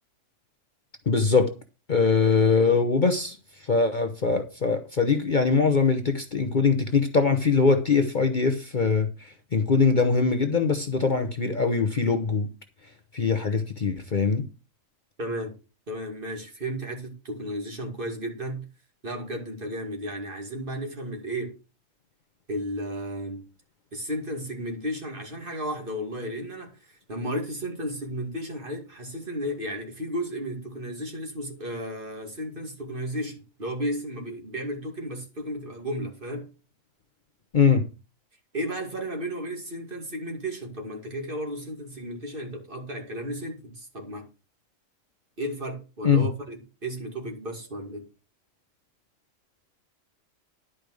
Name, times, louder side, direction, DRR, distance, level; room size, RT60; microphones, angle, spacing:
voice 1, 1.1-1.5 1.9-3.4 3.7-9.1 9.5-12.5 13.1-14.4 37.5-37.8 46.0-46.3, left 4 dB, 40° left, 1.0 m, -22 dB
voice 2, 15.2-15.5 15.9-18.7 19.0-21.5 22.5-23.4 23.9-36.5 38.5-44.3 45.4-48.1, equal, 40° right, 2.5 m, -33 dB
11.5 x 5.1 x 6.3 m
omnidirectional pair, 1.4 m